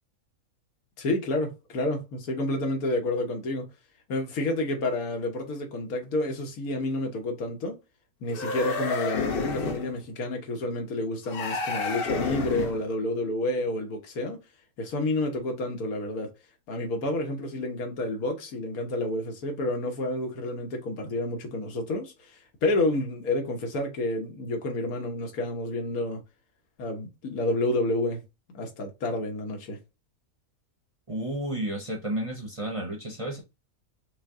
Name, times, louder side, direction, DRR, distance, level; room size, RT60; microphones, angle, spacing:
voice 1, 1.0-3.6 4.1-7.8 8.2-14.4 14.8-16.3 16.7-22.1 22.6-26.2 26.8-28.2 28.5-29.8, left 2 dB, 90° left, 1.5 m, -29 dB
sound 1, 8.3-9.9 11.3-12.9, left 4 dB, 50° left, 0.7 m, -30 dB
voice 2, 31.1-33.4, right 1 dB, 30° right, 0.6 m, -32 dB
5.5 x 2.1 x 3.6 m
omnidirectional pair, 1.5 m